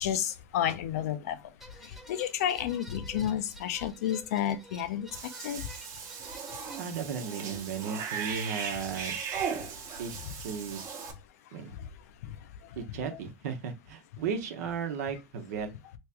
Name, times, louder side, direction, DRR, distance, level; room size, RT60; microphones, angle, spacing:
voice 1, 0.0-1.4 2.1-5.1 5.4-5.7 10.2-10.3 13.1-13.2, left 10 dB, 75° left, 0.5 m, -31 dB
sound 1, 1.6-6.8, equal, ahead, 0.6 m, -50 dB
Cat / Bathtub (filling or washing), 5.1-11.1, right 6 dB, 40° right, 0.9 m, -37 dB
voice 2, 6.8-9.2 10.0-10.1 10.4-10.8 11.5-11.7 12.7-15.7, right 6 dB, 80° right, 0.9 m, -35 dB
3.1 x 2.9 x 3.4 m
supercardioid pair, 125°, 8 cm